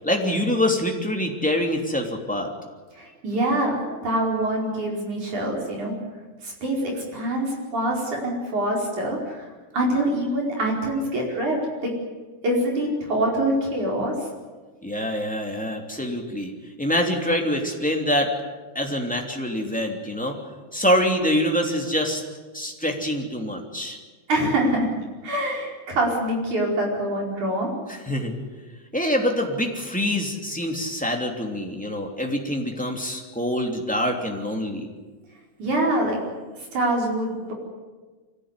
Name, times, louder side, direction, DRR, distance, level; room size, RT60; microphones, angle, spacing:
voice 1, 0.0-2.5 14.8-16.5 16.8-18.3 18.7-20.3 20.7-22.2 22.5-24.0 27.9-28.4 28.9-34.9, equal, 5° left, 0 dB, 1.8 m, -25 dB
voice 2, 2.9-5.9 6.4-11.9 12.4-14.1 24.3-24.9 25.2-27.7 35.6-36.2 36.7-37.5, right 1 dB, 40° right, -1 dB, 6.1 m, -25 dB
25.0 x 17.5 x 9.9 m, 1.3 s
omnidirectional pair, 5.3 m